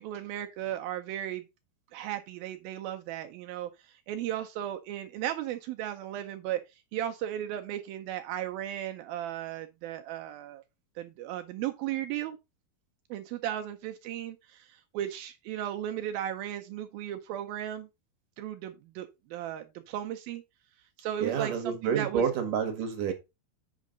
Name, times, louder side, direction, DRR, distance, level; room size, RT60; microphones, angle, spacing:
voice 1, 0.0-1.4 1.9-10.6 11.0-12.4 13.1-17.9 18.4-20.4 21.0-22.2, right 11 dB, 80° right, 2.2 m, -36 dB
voice 2, 21.2-23.1, right 7 dB, 65° right, 2.5 m, -29 dB
8.3 x 6.3 x 3.8 m
omnidirectional pair, 4.7 m